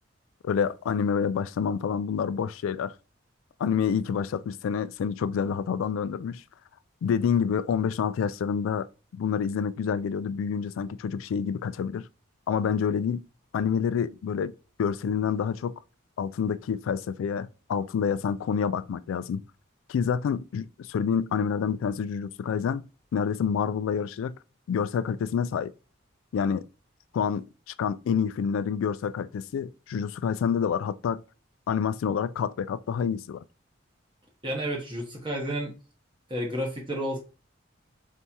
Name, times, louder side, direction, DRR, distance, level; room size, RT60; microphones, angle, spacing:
voice 1, 0.4-2.9 3.6-6.4 7.0-8.9 9.1-12.1 12.5-13.3 13.5-14.5 14.8-15.8 16.2-19.4 19.9-22.8 23.1-24.3 24.7-25.7 26.3-26.7 27.1-31.2 31.7-33.4, left 7 dB, 85° left, 0.3 m, -28 dB
voice 2, 34.4-35.7 36.3-37.2, equal, 25° right, 1.0 m, -31 dB
4.1 x 3.5 x 2.9 m
head